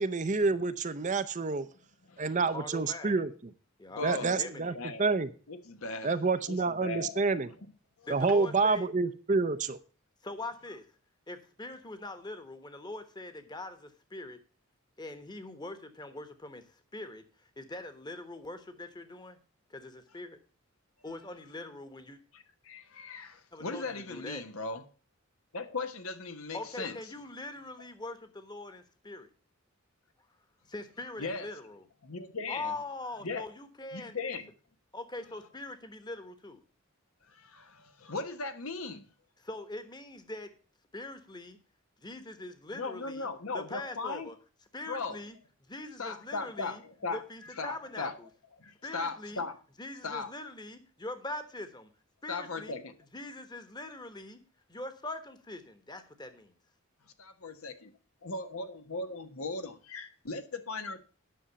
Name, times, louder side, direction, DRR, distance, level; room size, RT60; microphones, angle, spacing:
voice 1, 0.0-1.7 2.2-3.3 4.0-4.7 5.0-5.3 6.0-7.5 8.1-9.8, right 4 dB, 35° right, 0.6 m, -28 dB
voice 2, 2.5-3.2 3.8-4.8 8.0-8.9 10.2-10.8 11.3-14.4 15.0-19.4 19.7-20.4 21.0-22.2 23.5-24.4 26.5-29.3 30.7-31.8 32.5-34.2 34.9-36.6 39.4-40.5 40.9-41.6 42.0-43.3 43.5-44.4 44.7-45.4 45.7-46.8 47.1-48.3 48.8-49.4 49.8-51.9 52.2-52.8 53.1-54.4 54.7-56.6, left 2 dB, 20° left, 1.2 m, -42 dB
voice 3, 4.0-5.0 5.5-6.1 6.5-7.2 8.0-8.1 22.3-24.8 25.5-26.9 31.2-31.5 32.0-32.7 33.2-33.4 33.9-34.5 37.3-39.1 42.7-44.3 44.9-45.2 46.0-47.2 47.6-48.1 48.6-49.6 50.0-50.3 52.3-52.9 57.2-57.9 58.2-61.0, left 3 dB, 80° left, 1.3 m, -38 dB
10.0 x 6.3 x 6.8 m
head